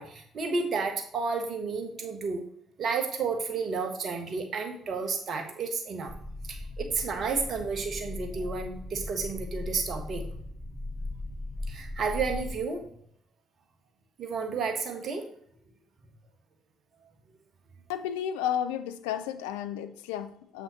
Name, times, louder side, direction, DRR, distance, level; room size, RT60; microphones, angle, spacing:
voice 1, 0.0-2.5 2.8-6.1 6.5-10.3 11.7-12.9 14.2-15.2, right 4 dB, 50° right, 5 dB, 1.2 m, -31 dB
sound 1, 6.1-12.6, left 2 dB, ahead, 1.1 m, -38 dB
voice 2, 17.9-20.6, left 9 dB, 75° left, 10 dB, 0.4 m, -32 dB
7.3 x 5.7 x 3.1 m, 0.68 s
figure-of-eight pair, 45°, 0 cm